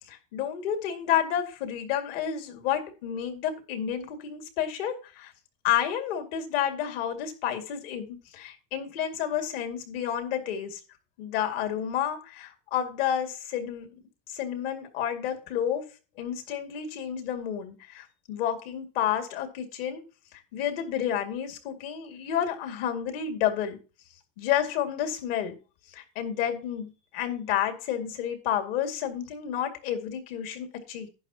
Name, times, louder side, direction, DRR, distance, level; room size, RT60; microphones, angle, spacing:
voice 1, 0.1-5.3 5.6-10.8 11.2-13.9 14.3-15.9 16.2-20.0 20.3-23.8 24.4-25.6 25.9-31.1, left 9 dB, 75° left, 6 dB, 2.3 m, -30 dB
11.0 x 9.7 x 2.9 m, 0.32 s
cardioid pair, 170°, 29 cm